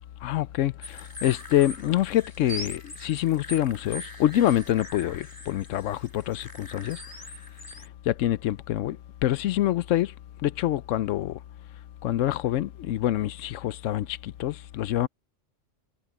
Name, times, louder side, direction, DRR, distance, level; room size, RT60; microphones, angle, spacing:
voice 1, 0.2-7.0 8.1-9.0 9.2-10.1 10.4-11.4 12.0-15.1, left 13 dB, 80° left, 1.0 m, -26 dB
sound 1, 0.8-7.9, left 1 dB, 15° left, 2.0 m, -42 dB
omnidirectional pair, 1.3 m